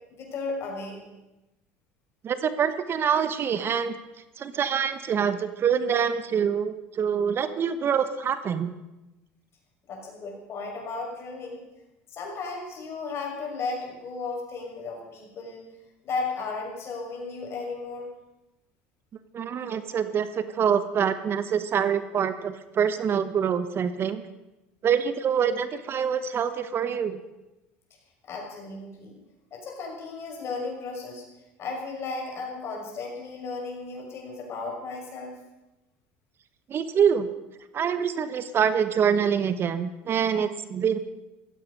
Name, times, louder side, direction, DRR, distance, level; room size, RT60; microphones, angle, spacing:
voice 1, 0.1-1.0 9.9-11.6 12.1-15.6 16.0-18.1 28.2-29.2 29.5-31.3 31.6-35.4, left 4 dB, 50° left, 0 dB, 6.0 m, -35 dB
voice 2, 2.2-4.0 4.4-8.7 19.3-24.2 24.8-27.2 36.7-37.3 37.7-41.0, right 7 dB, 40° right, 12 dB, 1.1 m, -25 dB
15.0 x 14.5 x 5.4 m, 0.99 s
supercardioid pair, 90°, 6 cm